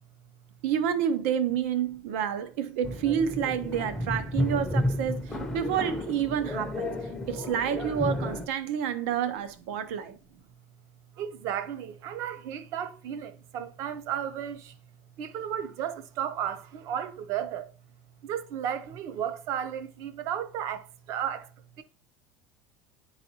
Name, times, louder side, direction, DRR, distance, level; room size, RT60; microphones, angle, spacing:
voice 1, 0.6-6.9 7.3-10.2, right 9 dB, 85° right, 0.7 m, -29 dB
sound 1, 2.8-8.5, left 1 dB, 5° left, 0.5 m, -32 dB
voice 2, 11.2-14.8 15.2-17.7 18.2-21.5 21.8-21.9, right 9 dB, 45° right, 0.5 m, -34 dB
9.9 x 4.1 x 2.8 m
cardioid pair, 170°, 7 cm